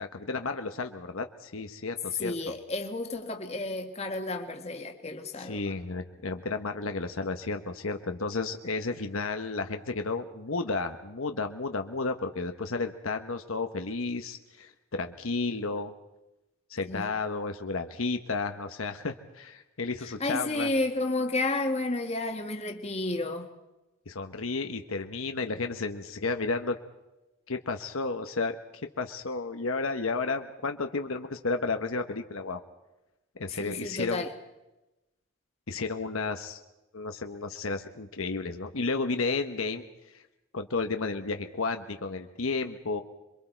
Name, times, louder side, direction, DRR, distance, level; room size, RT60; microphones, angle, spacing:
voice 1, 0.0-2.3 5.4-15.9 16.7-20.7 24.1-26.8 27.5-28.5 29.0-32.6 33.4-34.2 35.7-36.6 36.9-40.2 40.5-43.0, left 3 dB, 70° left, 6 dB, 1.0 m, -32 dB
voice 2, 2.2-5.7 16.9-17.1 20.0-23.5 33.5-34.3, left 2 dB, 30° left, 4 dB, 1.6 m, -31 dB
27.0 x 23.0 x 4.5 m, 1.0 s
head